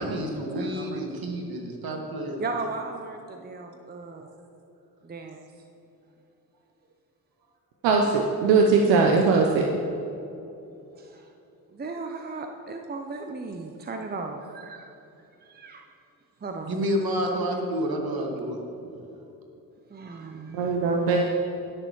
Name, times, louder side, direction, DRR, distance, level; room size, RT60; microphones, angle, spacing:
voice 1, 0.0-2.4 16.6-18.6, equal, 50° right, 2 dB, 2.0 m, -29 dB
voice 2, 0.5-1.0 2.4-4.2 5.0-5.4 10.9-11.2 11.7-14.9 15.4-15.9 16.4-16.9 19.9-20.8, right 3 dB, 20° right, 4 dB, 0.8 m, -36 dB
voice 3, 7.8-9.7 20.5-21.2, right 4 dB, 65° right, 2 dB, 0.9 m, -20 dB
20.0 x 6.8 x 3.2 m, 2.8 s
figure-of-eight pair, 40°, 47 cm